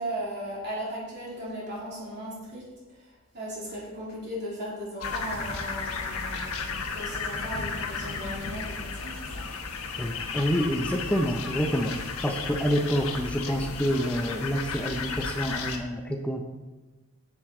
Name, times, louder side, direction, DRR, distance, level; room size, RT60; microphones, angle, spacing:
voice 1, 0.0-9.5, equal, 50° right, -6 dB, 3.1 m, -37 dB
sound 1, 5.0-15.8, left 4 dB, 75° left, 1.2 m, -34 dB
voice 2, 10.0-11.9 12.2-16.5, equal, 5° left, 2 dB, 0.6 m, -27 dB
10.5 x 8.0 x 3.8 m, 1.2 s
head